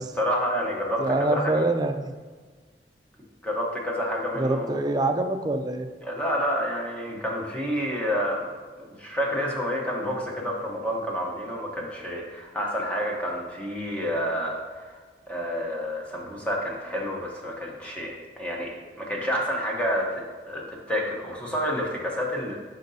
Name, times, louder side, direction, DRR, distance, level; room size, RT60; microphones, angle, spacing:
voice 1, 0.0-1.7 3.4-4.8 6.0-8.5 9.0-14.8 15.3-22.6, equal, 10° left, -2 dB, 1.0 m, -29 dB
voice 2, 1.0-2.1 4.4-5.9, right 2 dB, 25° right, 7 dB, 0.4 m, -25 dB
10.0 x 5.2 x 2.7 m, 1.5 s
head